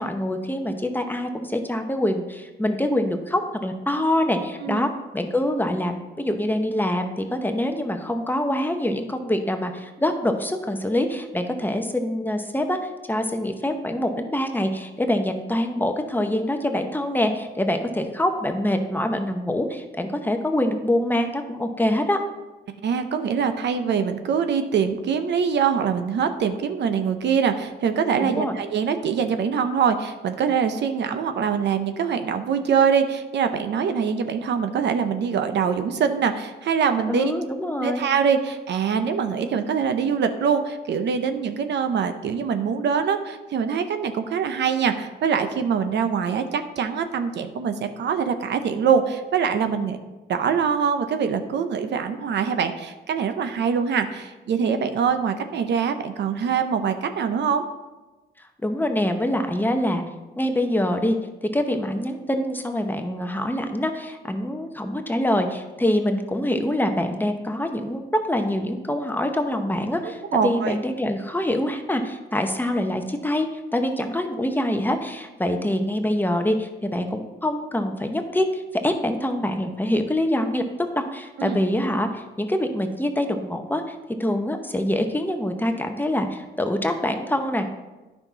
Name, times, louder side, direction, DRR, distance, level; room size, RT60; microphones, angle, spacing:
voice 1, 0.0-12.8 13.1-22.2 28.2-28.6 37.1-38.1 58.4-60.0 60.4-61.2 61.5-73.5 73.7-80.6 80.9-87.7, left 1 dB, 10° left, 5 dB, 0.9 m, -25 dB
voice 2, 22.8-37.3 37.8-50.0 50.3-57.6 70.3-70.8 81.4-81.6, right 6 dB, 60° right, 8 dB, 0.7 m, -23 dB
9.8 x 5.8 x 4.0 m, 1.1 s
cardioid pair, 90°, 20 cm